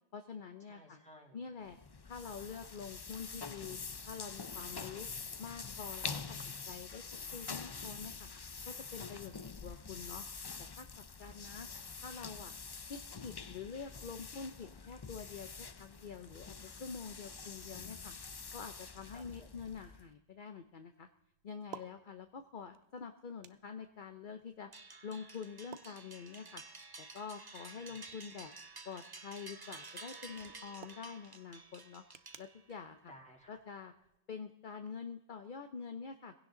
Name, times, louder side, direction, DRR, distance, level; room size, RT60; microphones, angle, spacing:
voice 1, 0.1-1.0 1.3-1.8 2.0-3.8 4.1-5.1 5.4-6.4 6.7-7.0 7.3-8.3 8.7-10.2 10.6-10.9 11.2-11.7 12.0-12.5 12.9-16.5 16.8-18.1 18.5-21.1 21.4-24.7 25.0-26.6 27.0-28.5 28.8-32.0 32.4-33.1 33.5-33.9 34.3-36.3, left 6 dB, 50° left, 7 dB, 0.9 m, -46 dB
voice 2, 0.7-1.4 11.2-12.0 19.0-19.5 27.7-28.0 33.1-33.6, equal, 5° left, -1 dB, 2.9 m, -59 dB
sound 1, 1.6-20.1, left 5 dB, 35° left, 0.4 m, -46 dB
sound 2, 19.0-34.2, right 8 dB, 70° right, 0.9 m, -60 dB
sound 3, 24.7-32.9, right 3 dB, 25° right, 0.8 m, -52 dB
20.5 x 16.5 x 3.8 m, 0.92 s
omnidirectional pair, 1.1 m